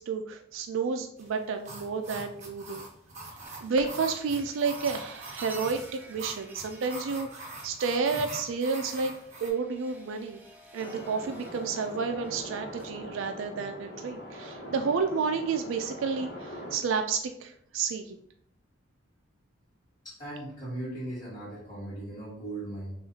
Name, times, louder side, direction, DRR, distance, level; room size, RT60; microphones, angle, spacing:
voice 1, 0.0-2.9 3.6-9.1 9.4-10.4 10.7-18.2, right 5 dB, 80° right, 6 dB, 0.4 m, -31 dB
sound 1, 1.2-9.5, right 2 dB, 35° right, 1.0 m, -43 dB
sound 2, 3.4-12.9, right 2 dB, 10° right, 0.4 m, -50 dB
sound 3, 10.8-16.8, equal, 55° left, 1.0 m, -42 dB
voice 2, 20.0-22.9, right 1 dB, 20° left, -11 dB, 1.3 m, -38 dB
6.4 x 2.4 x 2.8 m, 0.70 s
head